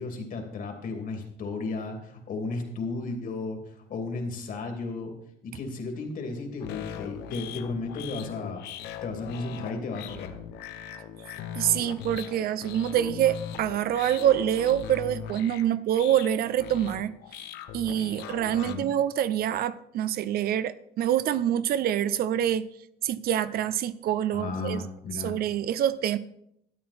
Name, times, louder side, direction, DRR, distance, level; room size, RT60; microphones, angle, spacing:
voice 1, 0.0-3.6 3.9-5.1 5.4-8.6 9.0-10.3 18.6-18.9 24.3-25.4, left 3 dB, 55° left, 2.6 m, -34 dB
sound 1, 6.6-18.8, left 8 dB, 85° left, 1.0 m, -40 dB
voice 2, 11.6-17.1 17.7-22.6 23.0-24.8 25.2-26.2, right 11 dB, 65° right, 0.6 m, -26 dB
12.5 x 8.6 x 4.2 m
cardioid pair, 110°, 17 cm